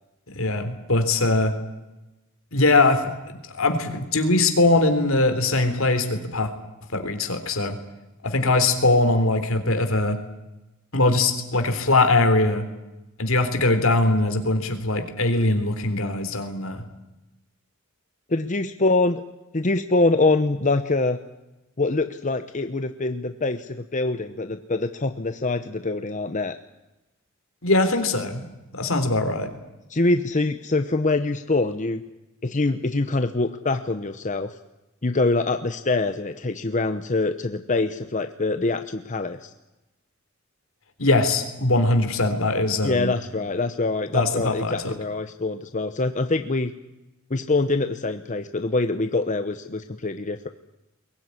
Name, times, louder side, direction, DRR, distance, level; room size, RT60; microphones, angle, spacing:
voice 1, 0.3-1.5 2.5-6.5 6.9-7.8 8.2-10.2 10.9-12.6 13.2-16.8 27.6-28.4 28.7-29.5 41.0-43.1 44.1-44.9, left 2 dB, 70° left, 8 dB, 3.6 m, -21 dB
voice 2, 18.3-19.2 19.5-21.2 21.8-26.6 29.9-32.0 32.4-34.6 35.0-39.5 42.8-46.7 47.3-50.5, left 2 dB, 35° left, 8 dB, 0.9 m, -24 dB
22.5 x 18.0 x 9.8 m, 0.99 s
head